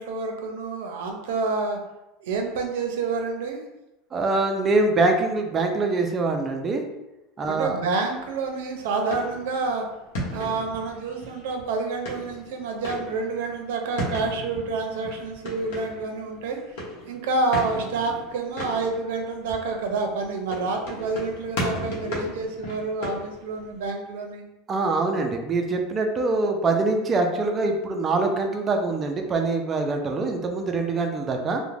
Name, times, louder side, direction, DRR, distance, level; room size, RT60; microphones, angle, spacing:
voice 1, 0.0-1.8 2.2-3.6 7.5-9.9 10.3-16.8 17.1-24.4, right 3 dB, 80° right, 4 dB, 0.5 m, -28 dB
voice 2, 4.1-6.8 7.4-7.8 24.7-31.6, right 3 dB, 20° right, 4 dB, 0.3 m, -24 dB
sound 1, 8.2-23.9, equal, 65° left, 0.8 m, -36 dB
2.4 x 2.0 x 3.2 m, 0.96 s
supercardioid pair, 160°, 0 cm